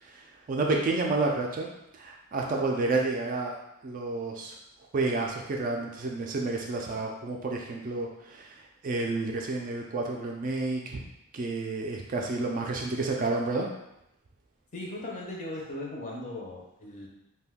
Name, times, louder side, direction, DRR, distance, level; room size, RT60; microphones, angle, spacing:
voice 1, 0.0-1.7 1.9-3.6 3.8-4.6 4.9-11.0 11.3-13.7, right 3 dB, 35° right, 0 dB, 0.3 m, -30 dB
voice 2, 14.7-17.1, left 1 dB, 35° left, -3 dB, 0.6 m, -38 dB
2.6 x 2.2 x 3.5 m, 0.86 s
head